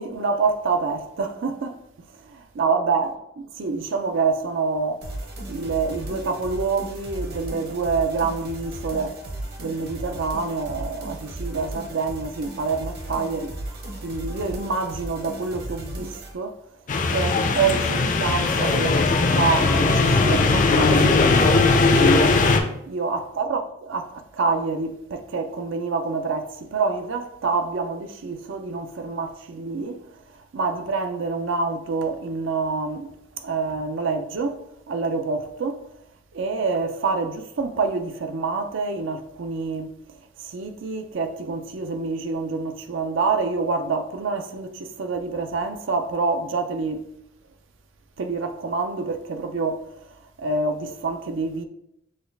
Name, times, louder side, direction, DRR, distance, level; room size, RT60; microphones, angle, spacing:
voice 1, 0.0-1.8 2.2-3.1 3.6-5.1 5.5-9.2 9.6-13.6 14.0-16.6 17.1-22.2 22.9-30.0 30.3-35.9 36.3-40.0 40.4-47.1 48.2-51.6, right 4 dB, 85° right, 0.5 m, -27 dB
sound 1, 5.0-16.3, right 1 dB, 55° right, 0.9 m, -36 dB
sound 2, 16.9-22.6, left 3 dB, 40° left, 0.4 m, -19 dB
6.4 x 2.3 x 3.3 m
head